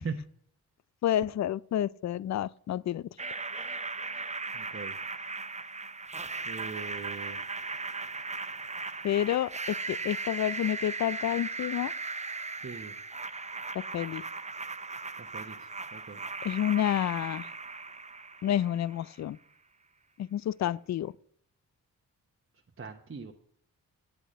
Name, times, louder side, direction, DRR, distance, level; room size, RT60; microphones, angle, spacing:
voice 1, 1.0-3.1 9.0-11.9 13.9-14.2 16.4-17.5 18.4-19.4 20.2-21.1, left 11 dB, 45° left, 0.4 m, -29 dB
sound 1, 3.2-19.1, right 4 dB, 20° right, 0.6 m, -38 dB
voice 2, 4.5-4.9 6.5-7.4 12.6-12.9 15.2-15.5 15.9-16.2 22.8-23.3, right 5 dB, 35° right, 1.1 m, -40 dB
9.0 x 8.1 x 6.4 m
supercardioid pair, 45°, 38 cm